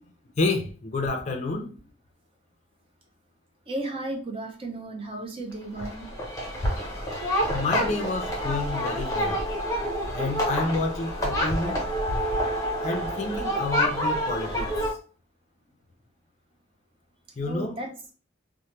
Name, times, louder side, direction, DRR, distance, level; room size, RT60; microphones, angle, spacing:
voice 1, 0.4-1.7 7.5-9.4 10.1-11.8 12.8-14.9 17.4-17.8, left 3 dB, 40° left, 0.4 m, -29 dB
voice 2, 3.7-6.1 17.4-17.9, right 2 dB, 30° right, 0.6 m, -34 dB
sound 1, 5.8-14.9, equal, 15° left, 0.7 m, -28 dB
2.9 x 2.1 x 3.0 m
head